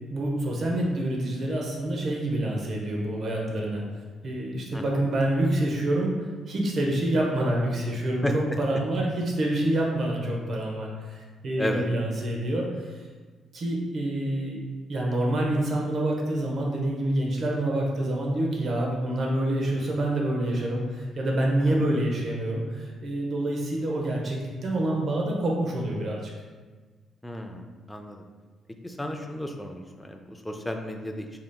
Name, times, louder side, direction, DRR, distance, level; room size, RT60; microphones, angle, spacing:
voice 1, 0.1-3.8 4.2-6.2 6.5-13.0 13.5-14.6 14.9-26.3, right 1 dB, 55° right, -1 dB, 0.8 m, -27 dB
voice 2, 27.2-28.3 28.8-31.4, left 1 dB, 10° left, 4 dB, 0.4 m, -33 dB
4.7 x 2.8 x 2.3 m, 1.4 s
cardioid pair, 90°, 0 cm